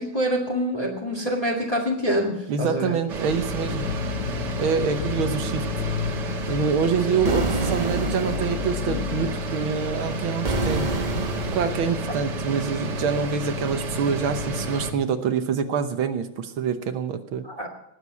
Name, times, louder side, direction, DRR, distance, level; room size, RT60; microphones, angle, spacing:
voice 1, 0.0-2.9 7.1-7.2 17.4-17.7, equal, 20° left, -1 dB, 2.1 m, -26 dB
voice 2, 2.5-3.9 4.6-5.6 6.5-11.0 11.5-17.4, right 6 dB, 85° right, 8 dB, 1.8 m, -26 dB
sound 1, 3.1-14.9, right 1 dB, 60° right, 2.0 m, -30 dB
sound 2, 3.5-9.5, left 7 dB, 60° left, 0.8 m, -32 dB
sound 3, 7.3-8.7 10.4-11.9, right 3 dB, 35° right, 0.8 m, -27 dB
19.0 x 7.4 x 8.2 m, 0.81 s
omnidirectional pair, 2.2 m